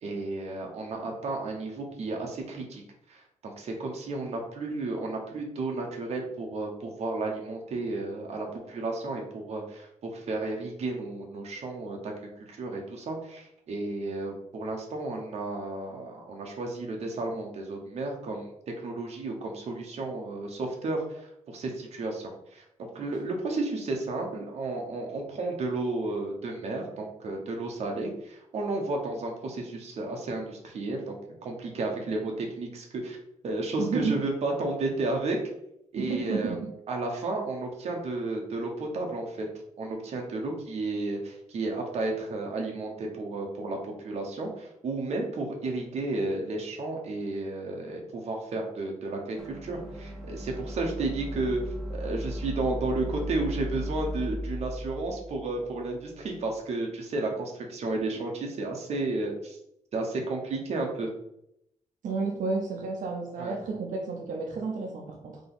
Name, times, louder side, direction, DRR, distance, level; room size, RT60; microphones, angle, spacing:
voice 1, 0.0-2.8 3.1-12.1 12.4-31.2 31.4-33.2 33.4-35.4 35.9-36.6 36.9-39.5 39.8-51.6 51.9-59.6 59.9-61.1 63.4-63.6, right 2 dB, 55° right, 1 dB, 0.9 m, -32 dB
voice 2, 33.8-34.1 36.0-36.7 62.0-65.4, right 4 dB, 80° right, 0 dB, 0.6 m, -31 dB
sound 1, 49.4-56.5, equal, ahead, 0.5 m, -37 dB
3.8 x 2.9 x 3.9 m, 0.78 s
wide cardioid pair, 180°, 13 cm